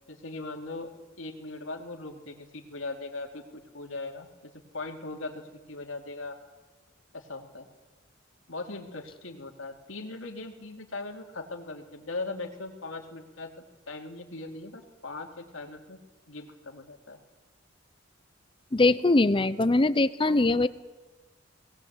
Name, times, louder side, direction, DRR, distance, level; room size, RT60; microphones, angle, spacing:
voice 1, 0.1-0.9 1.2-5.4 5.7-6.4 7.1-7.7 8.5-13.5 13.9-16.0 16.3-17.2 20.2-20.4, left 3 dB, 80° left, 3 dB, 2.6 m, -39 dB
voice 2, 18.7-20.7, left 2 dB, 25° left, 15 dB, 0.6 m, -22 dB
20.0 x 18.0 x 8.1 m, 1.2 s
head